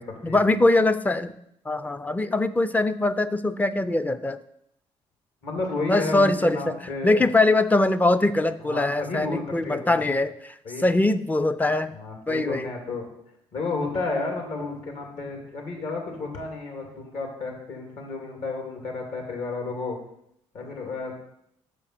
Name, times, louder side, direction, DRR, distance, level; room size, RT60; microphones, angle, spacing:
voice 1, 0.2-1.3 1.7-4.4 5.9-6.7 7.0-10.5 10.8-12.0 12.3-12.7, left 2 dB, 15° left, 12 dB, 0.4 m, -22 dB
voice 2, 5.4-7.2 8.6-10.1 10.6-10.8 11.9-13.1 13.5-20.0 20.5-21.1, left 3 dB, 65° left, 1 dB, 2.4 m, -32 dB
6.6 x 5.0 x 5.8 m, 0.75 s
cardioid pair, 85°, 12 cm